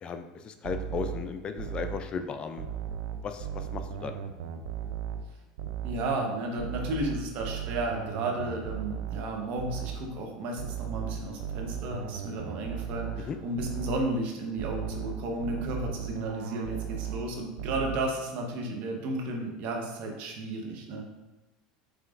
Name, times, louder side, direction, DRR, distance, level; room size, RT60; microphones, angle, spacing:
voice 1, 0.0-2.7 3.2-4.2 13.2-13.4, left 5 dB, 35° left, 8 dB, 0.4 m, -36 dB
sound 1, 0.6-2.1 2.6-5.3 5.6-6.1 6.6-10.1 10.6-13.3 13.6-14.1 14.6-17.3 17.6-18.1, right 8 dB, 75° right, 0.4 m, -36 dB
voice 2, 5.8-21.1, right 2 dB, 60° right, 1 dB, 0.9 m, -33 dB
5.0 x 3.2 x 2.5 m, 1.1 s
supercardioid pair, 105°, 3 cm